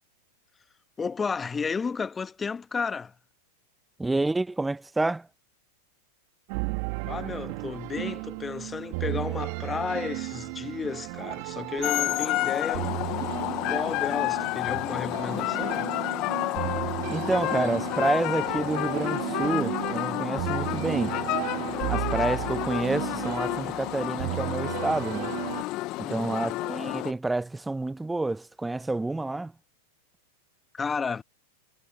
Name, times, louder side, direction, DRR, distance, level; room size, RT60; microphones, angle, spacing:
voice 1, 1.0-3.1 7.0-12.9 13.7-15.9 26.0-26.6 30.7-31.2, left 5 dB, 20° left, 1.6 m, -32 dB
voice 2, 4.0-5.3 17.1-21.2 21.9-25.3 26.0-29.5, right 2 dB, 10° right, 1.0 m, -29 dB
sound 1, 6.5-25.6, right 31 dB, 55° right, 3.4 m, -34 dB
sound 2, 11.8-27.1, left 19 dB, 45° left, 1.3 m, -30 dB
hypercardioid pair, 95°, 0 cm